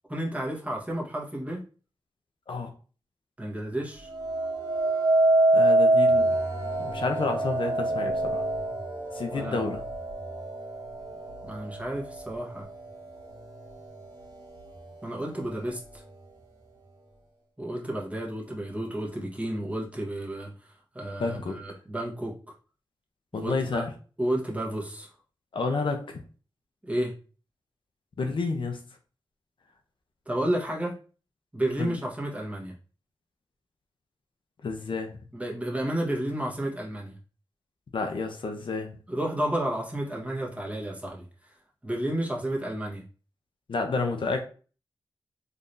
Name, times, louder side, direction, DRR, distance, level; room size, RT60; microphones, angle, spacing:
voice 1, 0.1-1.6 3.4-4.1 9.3-9.6 11.5-12.7 15.0-16.0 17.6-22.5 23.3-23.8 24.2-25.1 26.8-27.1 30.3-31.0 31.5-32.7 35.3-37.2 39.1-41.5 41.8-43.0, right 1 dB, 15° right, -3 dB, 1.3 m, -31 dB
sound 1, 4.1-13.2 13.8-14.2, right 2 dB, 60° right, 2.0 m, -26 dB
voice 2, 5.5-6.4 6.8-8.4 9.1-9.8 21.2-21.6 23.3-23.9 25.5-26.2 28.2-28.8 31.8-32.0 34.6-35.2 37.9-39.0 43.7-44.5, left 3 dB, 70° left, 5 dB, 0.7 m, -30 dB
3.8 x 3.2 x 2.6 m, 0.37 s
wide cardioid pair, 80°, 9 cm